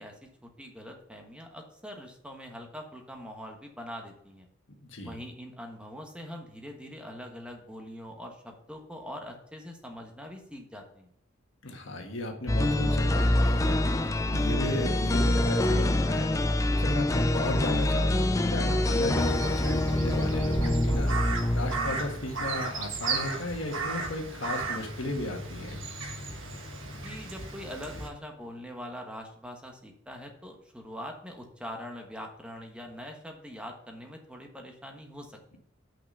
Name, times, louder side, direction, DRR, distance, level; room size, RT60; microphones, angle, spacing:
voice 1, 0.0-4.5 5.0-11.1 27.0-35.6, equal, 5° right, 3 dB, 1.3 m, -43 dB
voice 2, 4.8-5.2 11.6-16.3 16.7-25.8, left 1 dB, 65° left, 3 dB, 1.7 m, -35 dB
sound 1, 12.5-22.3, left 1 dB, 15° left, 0.4 m, -25 dB
Crow, 19.2-28.1, right 3 dB, 65° right, 1.4 m, -35 dB
6.0 x 6.0 x 6.8 m, 0.73 s
head